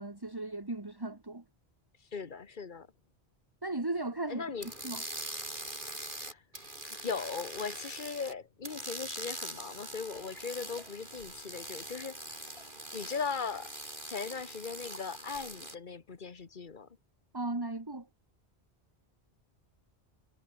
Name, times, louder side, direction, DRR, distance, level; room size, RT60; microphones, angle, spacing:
voice 1, 0.0-1.4 3.6-4.5 4.8-5.0 17.3-18.1, right 2 dB, 20° right, 1.9 m, -36 dB
voice 2, 2.1-2.9 4.3-4.7 6.3-6.4 7.0-12.2 12.9-13.7 14.1-16.9, left 5 dB, 50° left, 1.4 m, -38 dB
sound 1, 4.6-8.3 8.6-15.7, right 1 dB, 50° right, 7.4 m, -43 dB
Liquid, 9.6-15.7 16.3-16.4, left 1 dB, 70° left, 7.8 m, -59 dB
omnidirectional pair, 1.1 m